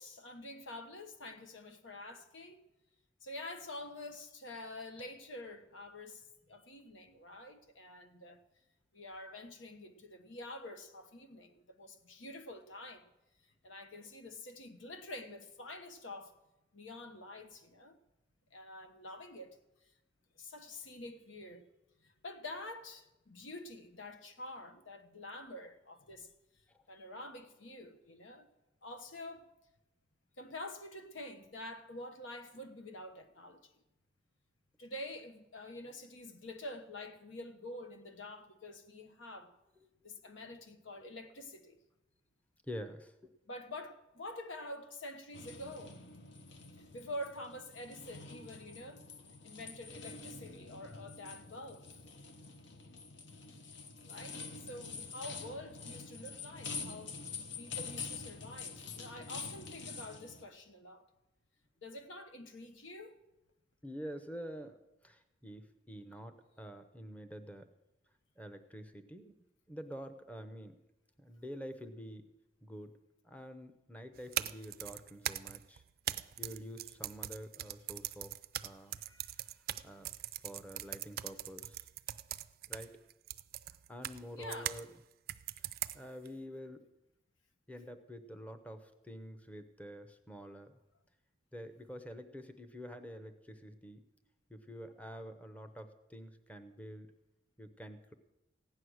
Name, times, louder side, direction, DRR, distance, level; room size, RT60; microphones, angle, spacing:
voice 1, 0.0-2.6 3.2-8.4 8.9-13.1 13.6-16.4 16.7-18.0 18.5-19.6 20.4-21.6 22.0-26.3 26.9-28.5 28.8-29.5 30.4-33.7 34.8-39.5 40.0-41.8 43.5-46.0 46.9-49.0 49.4-51.9 54.0-57.2 57.6-61.1 61.8-63.2 79.0-79.3 84.4-84.8, left 1 dB, 90° left, 1.2 m, -47 dB
voice 2, 42.7-43.1 63.8-64.8 65.0-67.7 68.4-69.3 69.7-70.8 71.2-72.2 72.6-72.9 73.2-75.8 76.4-78.3 78.6-78.9 79.8-80.1 80.4-81.9 82.7-83.0 83.9-84.9 85.9-86.9 87.7-90.7 91.5-94.0 94.5-97.1 97.6-98.1, equal, 10° left, 0.7 m, -47 dB
sound 1, 45.3-60.4, left 4 dB, 70° left, 0.9 m, -46 dB
sound 2, 74.2-84.8 85.3-86.3, right 13 dB, 50° right, 0.4 m, -41 dB
15.5 x 9.6 x 6.3 m
head